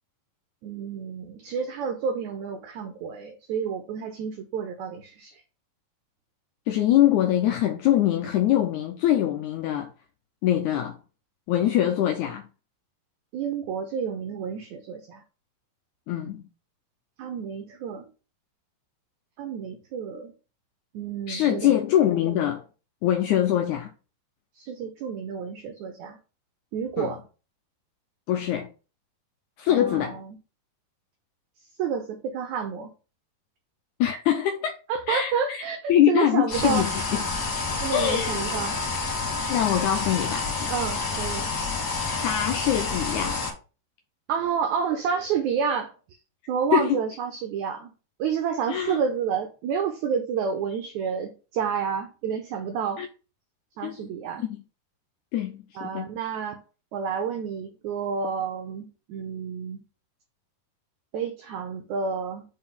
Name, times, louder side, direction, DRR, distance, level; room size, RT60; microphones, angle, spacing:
voice 1, 0.6-5.4 13.3-15.2 17.2-18.1 19.4-20.3 20.9-21.8 24.5-26.2 26.7-27.2 29.7-30.4 31.8-32.9 34.9-36.9 37.8-38.8 40.7-41.5 44.3-45.9 46.5-47.9 48.2-53.0 53.8-54.4 55.8-56.6 56.9-59.8 61.1-62.4, right 7 dB, 75° right, 1.8 m, -30 dB
voice 2, 6.7-9.9 10.4-11.0 11.5-12.5 16.1-16.4 21.3-22.6 23.0-23.9 27.0-27.1 28.3-28.7 29.6-30.2 34.0-34.8 35.1-35.6 35.9-37.3 37.9-38.5 39.5-40.5 42.2-43.4 46.7-47.0 48.7-49.0 53.0-53.1 53.8-54.0 54.4-54.5 55.3-56.1, left 11 dB, 80° left, 1.9 m, -23 dB
sound 1, 36.5-43.5, left 3 dB, 45° left, 1.3 m, -29 dB
5.2 x 3.9 x 5.5 m
omnidirectional pair, 3.9 m